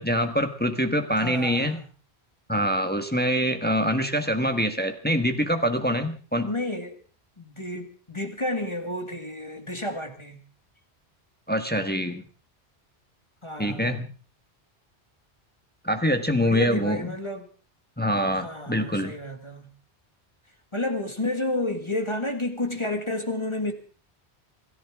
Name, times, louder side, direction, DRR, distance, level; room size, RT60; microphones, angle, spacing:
voice 1, 0.0-1.8 2.5-6.5 11.5-12.2 13.6-14.1 15.8-17.1 18.0-19.1, equal, 10° left, 1.4 m, -25 dB
voice 2, 1.1-1.8 6.4-7.0 7.4-10.4 13.4-14.0 16.4-17.5 18.3-19.7 20.7-23.7, left 2 dB, 25° left, 1.9 m, -31 dB
28.0 x 13.5 x 3.6 m
omnidirectional pair, 1.1 m